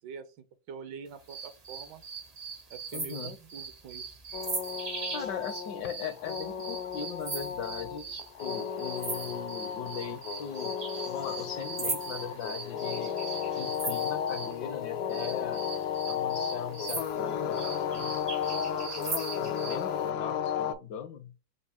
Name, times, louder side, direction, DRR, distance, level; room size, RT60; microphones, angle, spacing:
voice 1, 0.0-2.0 2.7-4.3, right 6 dB, 75° right, 1.3 m, -45 dB
sound 1, 1.3-14.5 15.1-19.8, right 4 dB, 50° right, 0.4 m, -39 dB
voice 2, 2.9-3.3 5.1-10.8 11.1-13.2 13.5-15.7 16.1-17.7 17.9-18.2 19.4-21.3, left 8 dB, 70° left, 1.2 m, -39 dB
sound 2, 4.3-20.7, left 8 dB, 85° left, 1.4 m, -34 dB
4.7 x 2.4 x 4.2 m
omnidirectional pair, 2.1 m